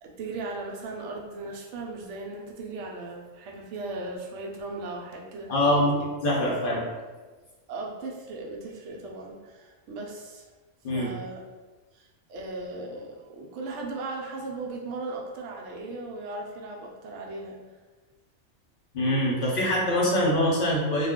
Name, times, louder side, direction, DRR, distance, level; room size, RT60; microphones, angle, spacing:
voice 1, 0.0-5.6 6.4-6.8 7.7-10.4 10.9-11.4 11.9-17.8, right 2 dB, 65° right, 0 dB, 0.8 m, -37 dB
voice 2, 5.5-6.8 10.8-11.1 18.9-21.1, left 1 dB, 50° left, -5 dB, 0.7 m, -24 dB
2.3 x 2.2 x 3.5 m, 1.3 s
omnidirectional pair, 1.5 m